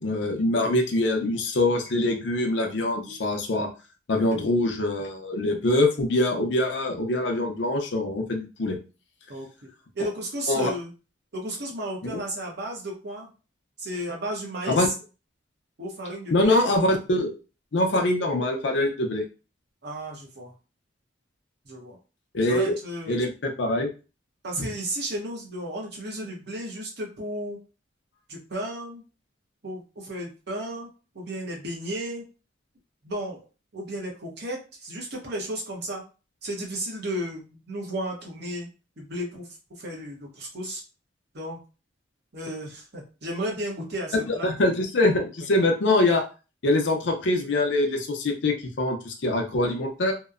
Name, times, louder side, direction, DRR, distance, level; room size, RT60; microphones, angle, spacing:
voice 1, 0.0-3.7 4.1-8.8 10.5-10.7 12.0-12.2 14.7-14.9 16.3-17.4 17.7-19.2 22.3-22.7 23.1-23.9 24.6-24.7 44.3-46.2 46.6-50.1, left 2 dB, 65° left, 3 dB, 0.6 m, -24 dB
voice 2, 9.3-9.7 9.9-10.9 11.3-13.3 13.8-14.9 15.8-16.7 19.8-20.5 21.6-22.0 22.5-23.2 24.4-27.6 28.3-29.0 29.6-30.9 31.1-32.3 33.0-33.4 33.7-36.0 36.4-38.7 39.0-39.5 39.8-40.8 41.3-41.6 42.3-44.5, right 1 dB, 55° right, -1 dB, 0.9 m, -33 dB
2.8 x 2.1 x 2.4 m, 0.33 s
head